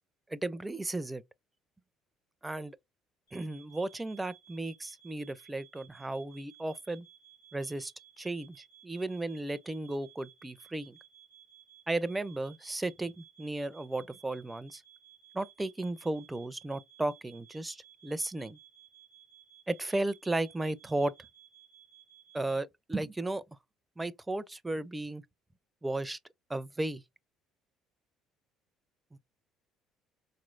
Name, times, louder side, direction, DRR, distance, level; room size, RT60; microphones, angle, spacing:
voice 1, 0.3-1.2 2.4-2.8 3.3-7.1 7.5-7.9 8.2-11.0 11.9-14.8 15.3-18.6 19.7-21.1 22.3-23.4 24.0-25.2 25.8-26.2 26.5-27.0 29.1-29.2, right 2 dB, 15° right, 0.4 m, -35 dB
sound 1, 3.3-22.6, right 10 dB, 85° left, 1.8 m, -59 dB
4.1 x 3.1 x 2.5 m
supercardioid pair, 85°, 0 cm